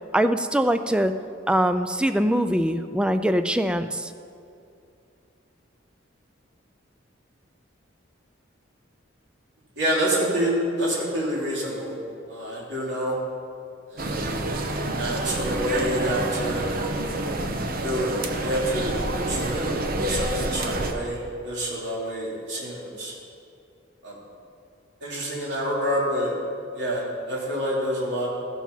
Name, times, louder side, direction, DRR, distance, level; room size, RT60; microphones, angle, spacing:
voice 1, 0.1-1.1 1.5-4.1, equal, 5° right, 9 dB, 0.4 m, -22 dB
voice 2, 9.8-12.0 12.3-13.2 13.9-14.2 14.9-16.8 17.8-18.9 19.3-23.1 24.0-24.2 25.0-26.3 26.7-28.3, equal, 65° right, -6 dB, 3.3 m, -27 dB
sound 1, 14.0-20.9, right 2 dB, 50° right, 0.9 m, -28 dB
14.5 x 7.3 x 5.6 m, 2.5 s
head